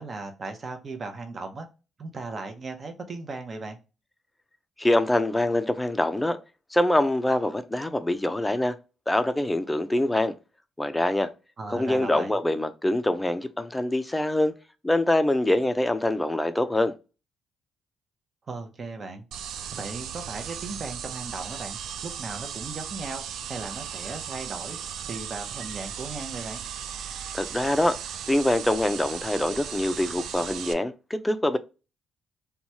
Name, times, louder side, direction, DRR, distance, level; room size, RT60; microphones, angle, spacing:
voice 1, 0.0-1.7 2.0-3.8 11.6-12.4 18.5-19.2 19.7-24.8 25.1-26.6, right 3 dB, 40° right, 0.7 m, -37 dB
voice 2, 4.8-6.4 6.7-8.8 9.1-10.3 10.8-11.3 11.7-14.5 14.8-16.9 27.3-28.0 28.3-31.6, left 1 dB, 10° left, 0.4 m, -24 dB
sound 1, 19.3-30.7, right 8 dB, 75° right, 0.3 m, -37 dB
2.9 x 2.3 x 2.8 m
cardioid pair, 90°, 0 cm